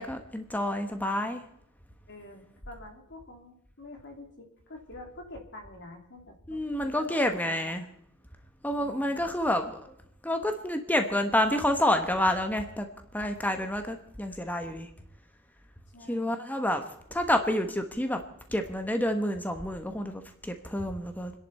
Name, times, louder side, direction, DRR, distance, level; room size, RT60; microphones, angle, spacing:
voice 1, 0.0-1.4 6.5-7.8 8.6-9.9 10.2-12.9 13.1-14.9 16.1-16.8 17.1-18.2 18.5-21.3, left 1 dB, 10° left, 6 dB, 1.1 m, -28 dB
voice 2, 2.1-7.9 8.8-9.3 15.9-16.4, left 1 dB, 55° left, 3 dB, 3.1 m, -47 dB
28.5 x 10.5 x 4.3 m, 0.71 s
head